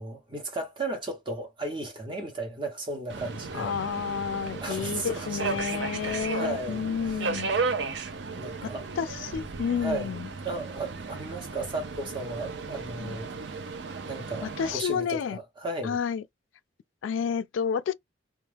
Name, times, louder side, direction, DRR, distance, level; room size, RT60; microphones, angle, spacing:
voice 1, 0.0-3.7 4.6-5.4 6.0-7.2 8.3-8.9 9.8-10.2 10.4-13.3 14.1-16.0, right 2 dB, 25° right, 0.8 m, -35 dB
Subway metro underground, 3.1-14.7, right 4 dB, 65° right, 0.5 m, -35 dB
voice 2, 3.5-7.5 8.6-8.7 9.0-10.3 13.0-13.2 14.4-15.4 15.8-16.2 17.0-17.9, left 7 dB, 80° left, 0.3 m, -30 dB
2.3 x 2.3 x 3.3 m
head